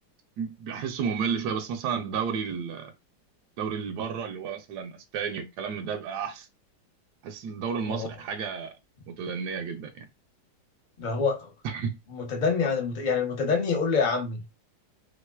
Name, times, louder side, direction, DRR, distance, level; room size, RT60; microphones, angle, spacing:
voice 1, 0.4-2.9 3.6-6.5 7.2-8.7 9.1-10.1 11.6-12.0, right 6 dB, 70° right, 1.1 m, -32 dB
voice 2, 11.0-11.5 12.1-14.5, left 5 dB, 55° left, 0.5 m, -26 dB
3.5 x 3.1 x 2.2 m
omnidirectional pair, 2.0 m